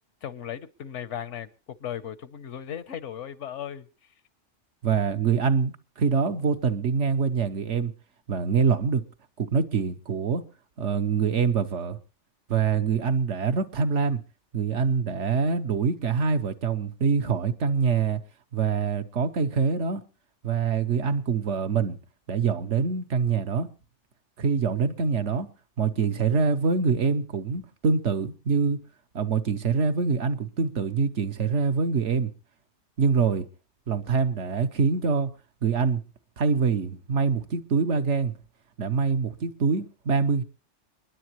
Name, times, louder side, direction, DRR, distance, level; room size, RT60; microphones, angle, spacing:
voice 1, 0.2-3.9, left 9 dB, 80° left, 1.2 m, -36 dB
voice 2, 4.8-7.9 8.3-9.0 9.4-10.4 10.8-12.0 12.5-14.2 14.5-18.2 18.5-20.0 20.4-22.0 22.3-23.7 24.4-25.5 25.8-28.8 29.1-32.3 33.0-33.5 33.9-35.3 35.6-36.0 36.4-38.3 38.8-40.4, right 5 dB, 75° right, 1.3 m, -25 dB
29.5 x 10.5 x 3.1 m
omnidirectional pair, 1.2 m